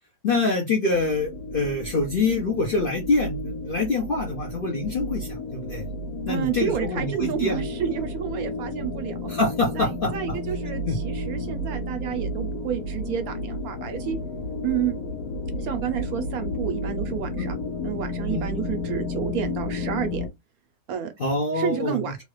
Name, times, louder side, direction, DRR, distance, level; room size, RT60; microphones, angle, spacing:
voice 1, 0.2-5.9 6.3-7.6 9.3-10.4 10.9-11.0 17.4-17.5 18.3-18.5 21.2-22.0, left 3 dB, 50° left, 0.6 m, -25 dB
sound 1, 0.9-20.3, left 2 dB, 70° left, 1.0 m, -32 dB
voice 2, 6.3-9.3 9.7-14.2 14.6-14.9 15.6-17.6 17.8-20.2 20.9-21.1 21.5-22.2, right 9 dB, 70° right, 1.1 m, -30 dB
3.0 x 2.3 x 3.1 m
omnidirectional pair, 1.7 m